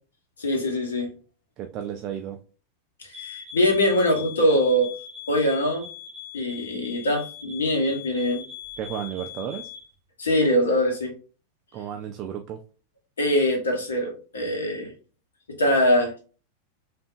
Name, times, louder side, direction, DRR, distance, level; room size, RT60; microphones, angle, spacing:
voice 1, 0.4-1.1 3.0-4.9 5.3-5.9 6.3-8.4 10.2-11.1 13.2-14.9 15.6-16.2, equal, 70° left, 1 dB, 1.0 m, -23 dB
voice 2, 1.6-2.4 8.8-9.7 11.7-12.6, right 9 dB, 35° right, 5 dB, 0.3 m, -33 dB
sound 1, 3.1-9.9, left 8 dB, 20° right, 0.9 m, -41 dB
3.5 x 2.5 x 2.4 m, 0.37 s
figure-of-eight pair, 90°, 0 cm